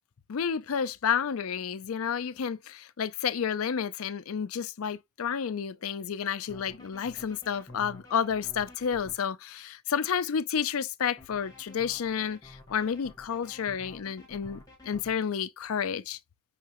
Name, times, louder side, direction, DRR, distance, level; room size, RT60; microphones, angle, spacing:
voice 1, 0.3-16.2, left 7 dB, 70° left, 0.5 m, -31 dB
sound 1, 6.5-9.1 11.2-15.1, left 1 dB, 15° left, 1.4 m, -50 dB
5.7 x 3.0 x 3.0 m
head